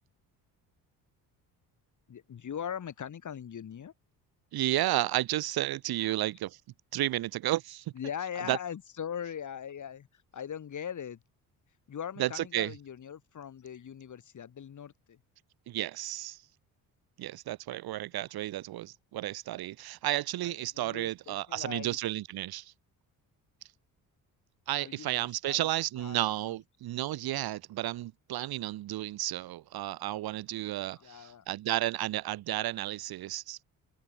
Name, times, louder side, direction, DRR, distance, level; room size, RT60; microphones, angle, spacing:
voice 1, 2.1-3.9 5.9-6.2 7.9-11.2 11.9-15.2 20.4-22.0 24.8-25.7 25.9-26.3 31.0-31.5, left 8 dB, 50° left, 7.1 m, -40 dB
voice 2, 4.5-6.6 6.9-7.8 8.5-8.6 12.2-12.7 15.7-16.4 17.2-22.7 24.7-33.6, right 15 dB, 75° right, 1.4 m, -32 dB
open air
cardioid pair, 100°, 38 cm